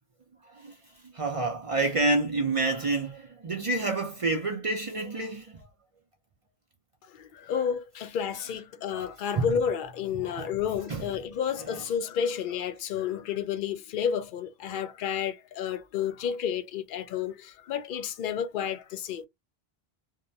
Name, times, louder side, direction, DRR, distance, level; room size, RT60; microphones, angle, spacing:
voice 1, 1.0-5.7 9.0-9.1 9.4-9.5 10.4-10.5 10.9-11.0, right 2 dB, 40° right, 0.5 m, -28 dB
voice 2, 7.1-19.3, left 8 dB, 60° left, 0.6 m, -31 dB
2.7 x 2.1 x 2.6 m
omnidirectional pair, 1.1 m